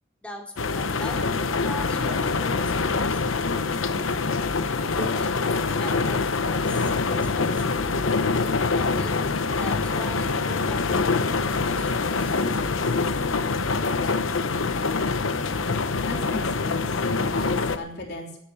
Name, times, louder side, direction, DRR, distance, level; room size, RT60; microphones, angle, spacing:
voice 1, 0.2-3.7 5.0-7.7 8.7-13.0, left 1 dB, 5° left, -1 dB, 2.9 m, -40 dB
sound 1, 0.6-17.8, left 4 dB, 80° left, 0.9 m, -25 dB
voice 2, 16.0-18.4, left 2 dB, 60° left, 1 dB, 3.3 m, -36 dB
12.0 x 10.5 x 6.9 m, 0.72 s
head